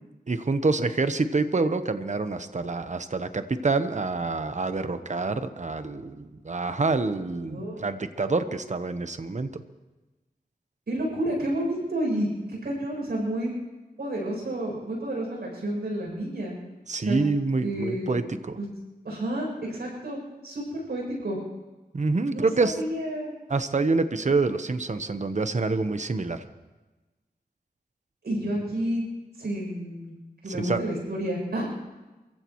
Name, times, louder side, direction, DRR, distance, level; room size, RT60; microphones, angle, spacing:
voice 1, 0.3-9.5 16.9-18.6 21.9-22.8 23.5-26.5 30.5-30.8, right 3 dB, 45° right, 10 dB, 1.1 m, -27 dB
voice 2, 7.5-7.9 10.9-13.5 14.0-16.5 17.0-17.2 17.6-18.1 18.6-18.7 19.0-21.4 22.3-23.3 28.2-29.0 29.4-30.2 30.4-31.6, right 1 dB, 85° right, -2 dB, 7.6 m, -30 dB
28.0 x 15.5 x 3.2 m, 1.2 s
cardioid pair, 50°, 16 cm